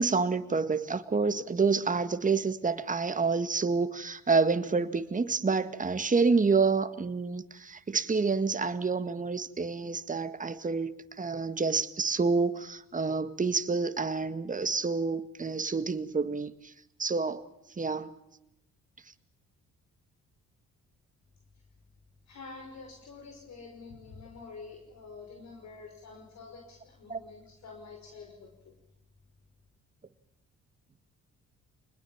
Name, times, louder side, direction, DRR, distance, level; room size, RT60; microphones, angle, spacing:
voice 1, 0.0-16.7 17.0-17.4 17.8-18.1 27.1-27.2, right 4 dB, 25° right, 1.9 m, -28 dB
voice 2, 22.3-28.7, left 4 dB, 65° left, 5.6 m, -47 dB
27.0 x 20.5 x 7.4 m
cardioid pair, 90°, 30 cm